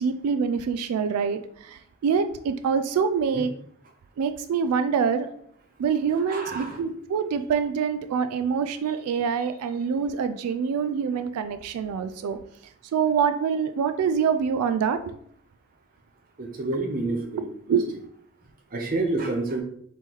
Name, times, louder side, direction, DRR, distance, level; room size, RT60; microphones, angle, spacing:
voice 1, 0.0-3.5 4.2-5.3 5.8-12.4 12.9-15.2 16.7-16.8 17.7-17.9, right 6 dB, 90° right, 13 dB, 0.3 m, -25 dB
voice 2, 6.3-6.8 16.4-17.5 18.7-19.6, right 2 dB, 40° right, 3 dB, 0.7 m, -28 dB
4.3 x 3.0 x 3.6 m, 0.67 s
head